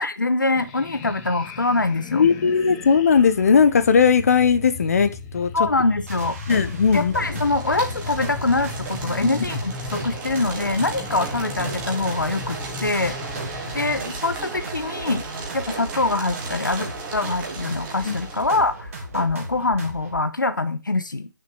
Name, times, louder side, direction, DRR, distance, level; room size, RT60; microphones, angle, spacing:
voice 1, 0.0-2.2 5.5-6.4 6.9-13.2 13.7-15.3 15.5-21.3, left 2 dB, 85° left, 12 dB, 1.1 m, -24 dB
sound 1, 0.5-14.0, left 4 dB, 20° left, 1.0 m, -36 dB
voice 2, 2.1-5.5 6.5-7.1 9.2-9.4 18.0-18.1, left 6 dB, 50° left, 10 dB, 1.2 m, -18 dB
sound 2, 6.1-20.2, right 1 dB, 45° right, 2.5 m, -36 dB
sound 3, 7.1-18.7, right 4 dB, 15° right, 1.8 m, -36 dB
7.1 x 6.6 x 6.9 m, 0.31 s
figure-of-eight pair, 145°, 10 cm